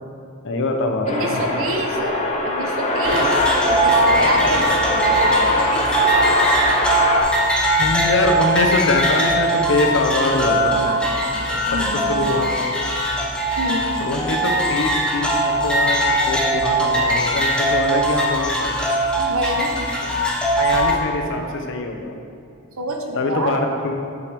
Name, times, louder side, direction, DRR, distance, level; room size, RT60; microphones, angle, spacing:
voice 1, 0.4-1.4 7.8-10.8 12.1-12.9 14.0-18.9 20.6-22.1 23.1-24.0, left 2 dB, 65° left, 3 dB, 0.7 m, -23 dB
sound 1, 1.0-7.2, left 1 dB, 35° left, 0.9 m, -22 dB
voice 2, 1.0-3.3 3.7-5.9 10.7-12.1 13.6-13.9 19.2-19.8 22.8-23.6, right 1 dB, 70° right, 3 dB, 0.8 m, -27 dB
sound 2, 3.0-20.9, right 1 dB, 5° left, 0.7 m, -20 dB
7.7 x 5.7 x 3.4 m, 2.4 s
head